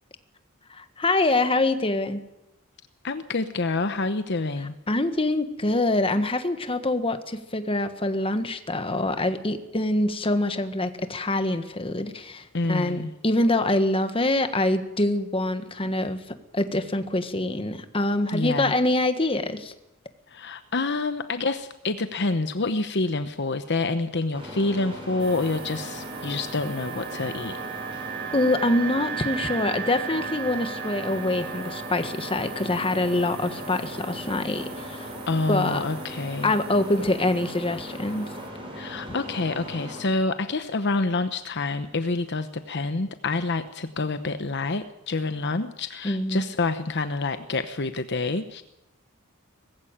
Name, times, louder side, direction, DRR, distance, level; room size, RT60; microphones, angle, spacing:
voice 1, 0.7-2.2 4.9-19.7 28.3-35.2 35.5-35.8 36.4-38.3 46.0-46.5, left 2 dB, 25° left, 9 dB, 1.5 m, -25 dB
voice 2, 3.0-4.7 12.5-13.1 18.3-18.7 20.3-27.6 35.3-36.5 38.7-48.6, left 3 dB, 55° left, 10 dB, 1.0 m, -27 dB
sound 1, 24.3-40.0, equal, 25° right, 6.1 m, -38 dB
sound 2, 25.2-38.5, right 7 dB, 50° right, 3.0 m, -38 dB
20.5 x 15.5 x 9.0 m, 0.89 s
head